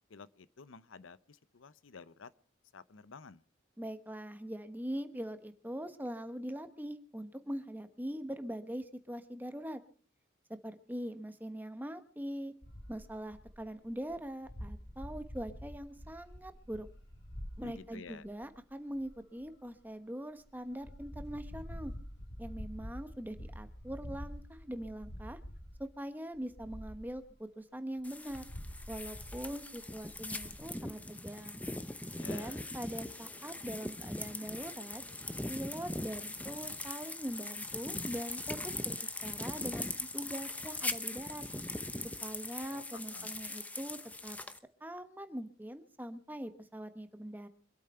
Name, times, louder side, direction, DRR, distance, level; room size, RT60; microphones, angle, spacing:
voice 1, 0.1-2.3 2.7-3.4 17.6-18.2 32.1-32.6 42.6-43.3, left 4 dB, 90° left, 0.7 m, -51 dB
voice 2, 3.8-9.8 10.6-12.5 12.9-16.9 17.6-21.9 22.4-25.4 25.8-28.4 28.9-31.6 32.3-35.0 35.5-39.0 39.2-41.4 42.2-44.4 44.8-47.5, equal, 10° right, 1.1 m, -42 dB
sound 1, 12.6-19.8 20.3-25.9 26.3-27.3 28.0-30.8, equal, 60° left, 4.7 m, -47 dB
sound 2, 28.0-44.6, left 2 dB, 10° left, 0.7 m, -41 dB
25.5 x 8.6 x 5.6 m
head